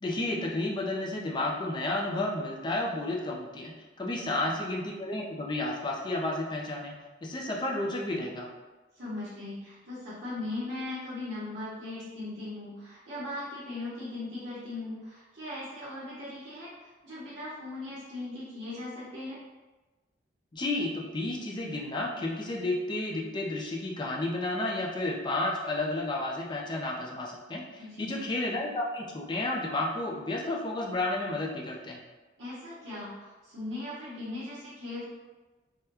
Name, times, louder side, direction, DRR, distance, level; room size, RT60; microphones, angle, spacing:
voice 1, 0.0-6.9 7.2-8.5 20.5-32.0, left 2 dB, 25° left, -1 dB, 0.4 m, -32 dB
voice 2, 4.1-4.5 8.9-19.4 27.8-28.2 32.4-35.1, left 2 dB, 85° right, -10 dB, 0.9 m, -39 dB
3.5 x 2.1 x 2.8 m, 1.2 s
head